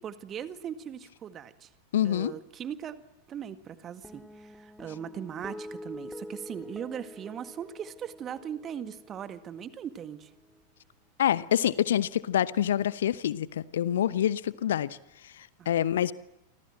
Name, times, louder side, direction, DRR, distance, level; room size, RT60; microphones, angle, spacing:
voice 1, 0.0-1.7 2.0-3.0 3.3-10.3 15.6-15.7, right 8 dB, 25° right, 11 dB, 1.9 m, -39 dB
voice 2, 1.9-2.3 11.2-15.0 15.2-16.1, left 10 dB, 60° left, 18 dB, 0.9 m, -26 dB
sound 1, 4.0-10.6, left 1 dB, 5° left, 3.0 m, -46 dB
29.0 x 25.0 x 7.8 m, 0.93 s
figure-of-eight pair, 90°, 0 cm